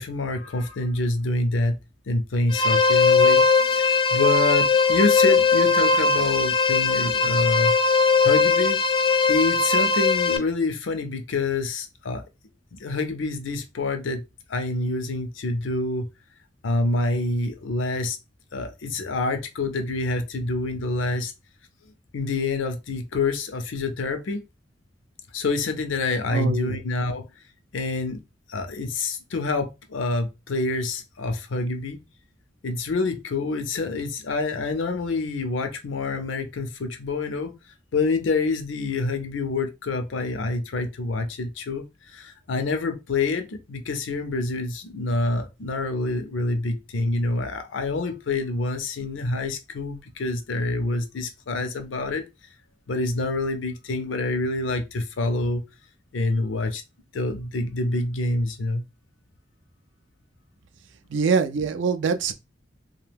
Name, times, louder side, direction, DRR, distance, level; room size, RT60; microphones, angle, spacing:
voice 1, 0.0-1.8 2.1-7.7 8.2-8.8 9.3-12.2 12.7-14.2 14.5-16.1 16.6-18.2 18.5-21.3 22.1-24.4 25.3-27.3 27.7-28.2 28.5-32.0 32.6-37.5 37.9-41.9 42.1-52.2 52.9-55.6 56.1-56.8 57.1-58.8, left 2 dB, 85° left, 0.5 m, -27 dB
sound 1, 2.5-10.4, left 4 dB, 25° left, 0.3 m, -19 dB
voice 2, 26.3-26.8 61.1-62.3, right 5 dB, 75° right, 0.4 m, -24 dB
2.6 x 2.2 x 3.4 m
head